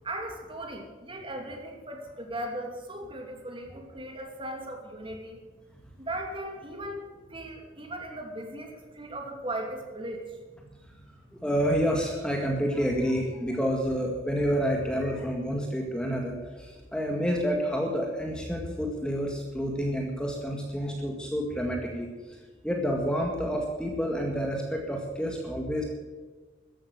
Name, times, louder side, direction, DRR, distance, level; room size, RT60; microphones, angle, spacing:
voice 1, 0.0-5.4 6.0-7.0 7.3-10.4, right 1 dB, 25° right, 2 dB, 2.9 m, -37 dB
voice 2, 11.4-22.1 22.6-25.8, equal, 5° left, 0 dB, 1.9 m, -29 dB
14.0 x 11.0 x 8.1 m, 1.3 s
head